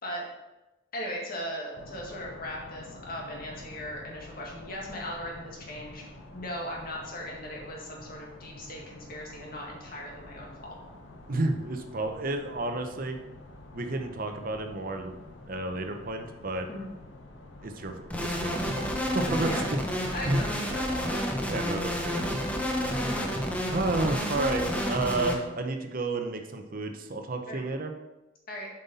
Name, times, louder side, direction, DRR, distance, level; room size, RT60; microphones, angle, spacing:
voice 1, 0.9-6.0 6.3-10.8 16.7-16.9 19.5-19.6 20.1-21.1 27.5-27.6 28.5-28.7, equal, 50° left, -2 dB, 1.9 m, -38 dB
sound 1, 1.7-19.6, left 1 dB, 85° left, 1.0 m, -48 dB
voice 2, 11.3-13.2 13.7-15.1 15.5-16.7 17.6-19.7 20.0-20.4 21.5-22.2 23.7-27.9, right 2 dB, 50° right, 5 dB, 0.7 m, -31 dB
sound 2, 18.1-25.3, equal, 10° left, 0.9 m, -30 dB
7.5 x 5.5 x 4.1 m, 1.0 s
head